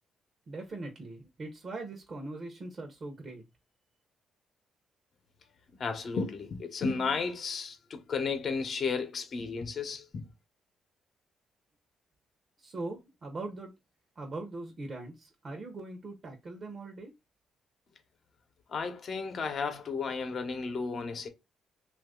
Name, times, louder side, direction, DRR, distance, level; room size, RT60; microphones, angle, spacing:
voice 1, 0.5-3.4 12.6-13.7 14.2-17.1, right 2 dB, 45° right, 0.8 m, -41 dB
voice 2, 5.8-10.3 18.7-21.3, left 5 dB, 50° left, 0.9 m, -33 dB
2.9 x 2.6 x 3.7 m
cardioid pair, 90°, 0 cm